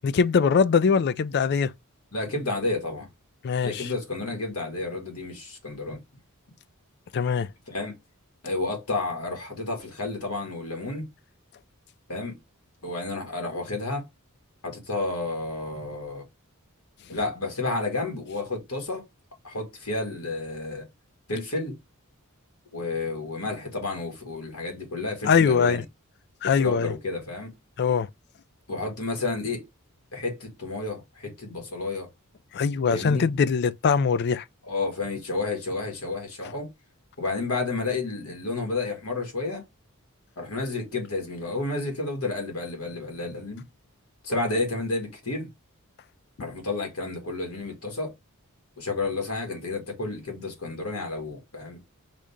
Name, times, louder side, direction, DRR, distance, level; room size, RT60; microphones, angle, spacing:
voice 1, 0.0-1.7 3.4-3.9 7.1-7.5 25.3-25.8 26.4-26.9 27.8-28.1 32.5-34.4, left 6 dB, 50° left, 0.4 m, -22 dB
voice 2, 2.1-3.1 3.6-6.0 7.7-8.0 8.4-11.1 12.1-12.4 12.8-14.1 14.6-16.2 17.1-19.0 19.4-20.9 21.3-21.8 22.7-25.8 26.4-27.5 28.7-29.6 30.1-32.1 32.9-33.3 34.6-36.7 37.2-39.6 40.4-43.7 44.2-45.5 46.4-48.1 48.8-51.8, left 3 dB, 80° left, 1.9 m, -31 dB
5.0 x 2.8 x 3.5 m
head